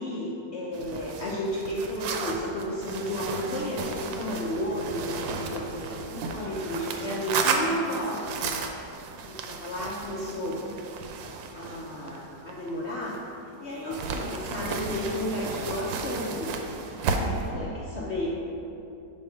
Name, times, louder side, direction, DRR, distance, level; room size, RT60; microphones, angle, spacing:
voice 1, 0.0-8.3 9.1-10.6 11.5-13.2 13.6-16.6 17.2-18.3, left 1 dB, 75° left, -5 dB, 0.6 m, -32 dB
sound 1, 0.7-13.4 13.9-17.5, right 4 dB, 85° right, 1.3 m, -33 dB
5.1 x 4.6 x 5.7 m, 2.8 s
omnidirectional pair, 2.0 m